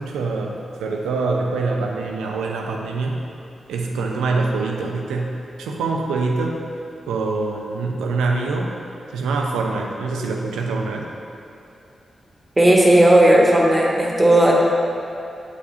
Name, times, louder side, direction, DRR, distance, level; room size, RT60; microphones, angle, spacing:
voice 1, 0.0-3.2 3.7-6.6 7.1-8.7 9.1-11.1, right 3 dB, 90° right, 1 dB, 0.5 m, -24 dB
voice 2, 12.6-14.5, right 1 dB, 25° right, -3 dB, 1.4 m, -14 dB
8.1 x 4.9 x 2.7 m, 2.7 s
supercardioid pair, 40°, 0 cm